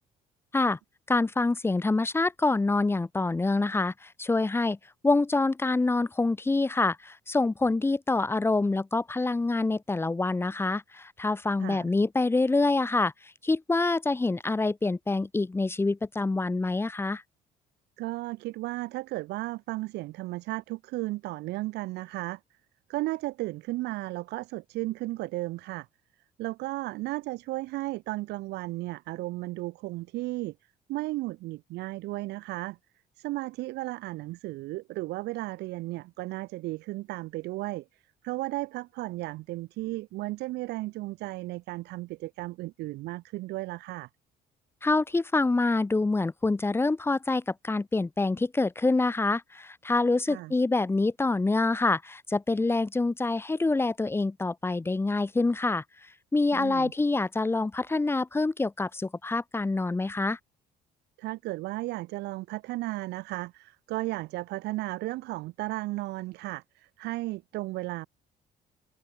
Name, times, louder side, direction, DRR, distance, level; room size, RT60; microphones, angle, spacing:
voice 1, 1.1-4.8 5.0-13.1 13.4-17.2 44.8-55.8 56.3-60.4, left 3 dB, 15° left, 0.9 m, -26 dB
voice 2, 11.6-11.9 18.0-22.4 22.9-25.9 26.4-30.5 30.9-32.8 33.2-44.1 50.3-50.5 56.5-56.9 61.2-68.1, right 19 dB, 85° right, 1.1 m, -34 dB
open air
cardioid pair, 110°, 17 cm